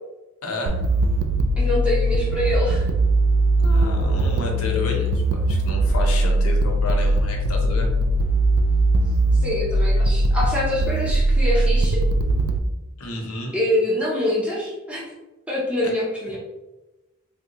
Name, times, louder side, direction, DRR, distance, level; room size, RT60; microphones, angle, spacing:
voice 1, 0.4-0.8 3.6-7.9 13.0-13.5, left 1 dB, 80° left, 1 dB, 0.7 m, -30 dB
sound 1, 0.7-12.6, right 1 dB, 85° right, 0.3 m, -20 dB
voice 2, 1.6-2.8 9.4-12.0 13.5-15.0 15.5-16.4, left 1 dB, 5° right, -6 dB, 0.6 m, -25 dB
3.7 x 2.2 x 2.8 m, 1.0 s
head